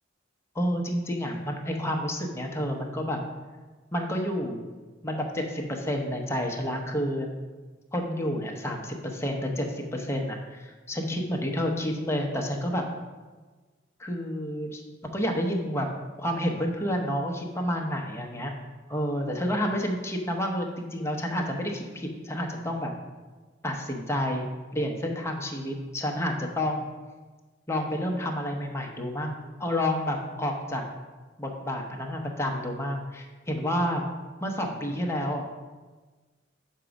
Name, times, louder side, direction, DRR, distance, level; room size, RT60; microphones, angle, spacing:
voice 1, 0.5-3.2 3.9-4.6 5.0-7.3 7.9-12.8 14.0-14.8 15.1-15.9 16.2-18.5 18.9-22.9 23.6-24.5 24.7-26.9 27.7-30.8 31.4-34.1 34.4-35.5, equal, 15° left, 1 dB, 0.8 m, -29 dB
5.9 x 4.5 x 5.1 m, 1.3 s
head